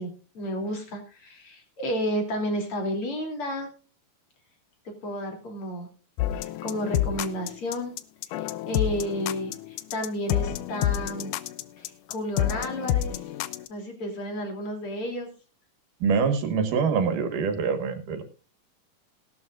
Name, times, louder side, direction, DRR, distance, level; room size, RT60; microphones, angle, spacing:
voice 1, 0.0-3.7 5.0-5.9 6.3-7.9 8.3-11.3 11.8-13.2 13.7-15.3, equal, 40° left, 4 dB, 3.8 m, -32 dB
sound 1, 6.2-13.7, left 12 dB, 75° left, 2.1 m, -28 dB
voice 2, 16.0-18.2, right 5 dB, 75° right, 8 dB, 3.1 m, -25 dB
18.0 x 12.0 x 2.5 m, 0.36 s
omnidirectional pair, 3.9 m